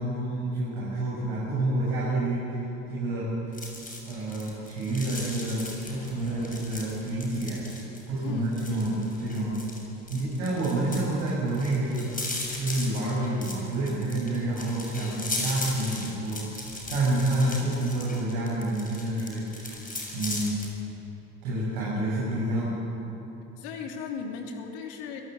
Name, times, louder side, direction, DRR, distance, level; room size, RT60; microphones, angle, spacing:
voice 1, 0.0-2.6 2.9-3.3 4.0-7.6 8.1-9.6 10.1-12.1 12.5-16.6 16.9-19.8 20.1-20.6 21.4-22.8, right 1 dB, 70° right, -7 dB, 7.8 m, -28 dB
sound 1, 3.5-20.7, left 2 dB, 20° left, 7.2 m, -38 dB
voice 2, 23.6-25.2, left 5 dB, 65° left, 2 dB, 3.1 m, -37 dB
27.5 x 17.5 x 8.4 m, 3.0 s
figure-of-eight pair, 60°, 40 cm